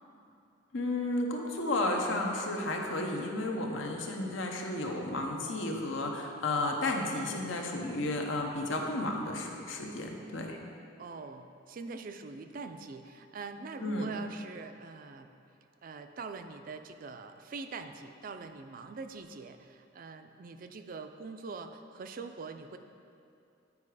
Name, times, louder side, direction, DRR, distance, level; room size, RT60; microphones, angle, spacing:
voice 1, 0.7-10.6 13.8-14.1, left 2 dB, 80° left, 1 dB, 0.9 m, -33 dB
voice 2, 11.0-15.3 15.8-22.8, right 4 dB, 45° right, 8 dB, 0.4 m, -43 dB
9.6 x 4.7 x 4.8 m, 2.6 s
head